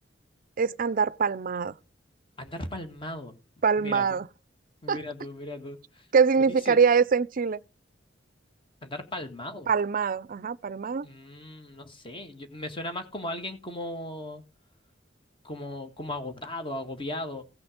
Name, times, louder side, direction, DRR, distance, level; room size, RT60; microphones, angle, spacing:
voice 1, 0.6-1.8 3.6-4.3 4.9-5.0 6.1-7.6 9.7-11.1, right 5 dB, 45° right, 0.5 m, -24 dB
voice 2, 2.4-3.4 3.8-4.2 4.8-6.1 6.7-6.8 8.8-9.7 11.0-14.4 15.4-17.4, left 1 dB, 30° left, 1.8 m, -37 dB
16.5 x 6.1 x 5.1 m
head